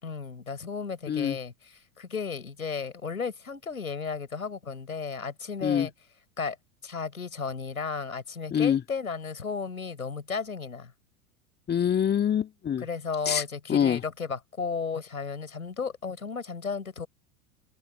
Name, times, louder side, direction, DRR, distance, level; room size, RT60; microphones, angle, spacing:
voice 1, 0.0-1.5 2.0-5.9 6.4-6.6 6.8-10.9 12.8-17.1, left 5 dB, 90° left, 5.4 m, -34 dB
voice 2, 1.1-1.4 5.6-5.9 8.5-8.8 11.7-12.9 13.3-14.0, left 8 dB, 25° left, 2.0 m, -25 dB
open air
hypercardioid pair, 90°, 41 cm